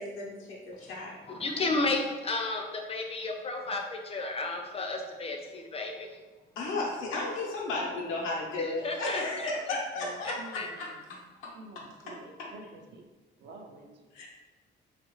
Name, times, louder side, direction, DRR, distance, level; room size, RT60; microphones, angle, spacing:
voice 1, 0.0-1.1 6.6-12.5 14.1-14.3, left 2 dB, 90° left, -3 dB, 0.8 m, -35 dB
voice 2, 1.3-6.1 8.6-9.5 10.2-10.7, left 2 dB, 30° left, 3 dB, 0.5 m, -33 dB
voice 3, 10.0-10.8 11.5-13.0 13.4-14.0, right 3 dB, 60° right, 2 dB, 0.5 m, -48 dB
2.7 x 2.4 x 3.0 m, 1.2 s
cardioid pair, 90°, 20 cm